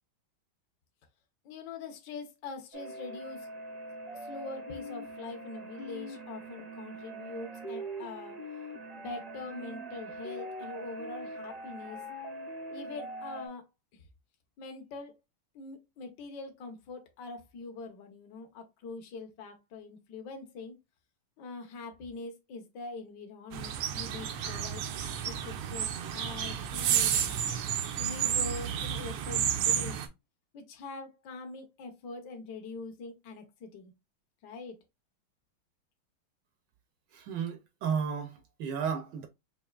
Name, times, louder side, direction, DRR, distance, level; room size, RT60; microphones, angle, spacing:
voice 1, 1.4-3.5 4.1-8.4 8.9-12.0 12.7-14.1 14.6-15.2 15.5-20.8 21.4-27.4 28.0-30.0 30.5-33.9 34.4-34.8, left 3 dB, 60° left, 1.4 m, -43 dB
sound 1, 2.7-13.5, right 1 dB, 55° right, 0.4 m, -42 dB
sound 2, 23.5-30.1, right 9 dB, 90° right, 1.5 m, -31 dB
voice 2, 37.1-39.3, right 7 dB, 70° right, 1.1 m, -33 dB
5.5 x 2.6 x 2.3 m
omnidirectional pair, 2.3 m